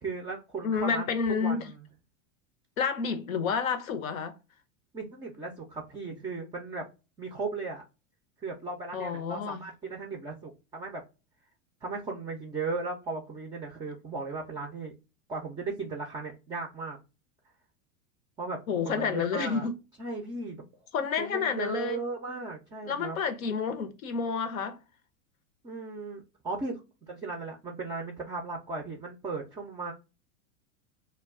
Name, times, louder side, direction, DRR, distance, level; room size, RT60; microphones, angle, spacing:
voice 1, 0.0-1.1 1.4-1.8 4.9-6.9 7.2-7.8 8.4-11.0 11.8-15.0 15.3-17.0 18.4-18.6 18.8-19.7 20.0-20.6 21.2-23.2 25.6-26.8 27.1-29.9, right 3 dB, 10° right, 0.3 m, -36 dB
voice 2, 0.6-1.7 2.8-4.4 8.9-9.7 18.7-19.7 20.9-22.0 22.9-24.8, left 6 dB, 90° left, 0.7 m, -30 dB
2.3 x 2.2 x 3.4 m
hypercardioid pair, 110°, 40 cm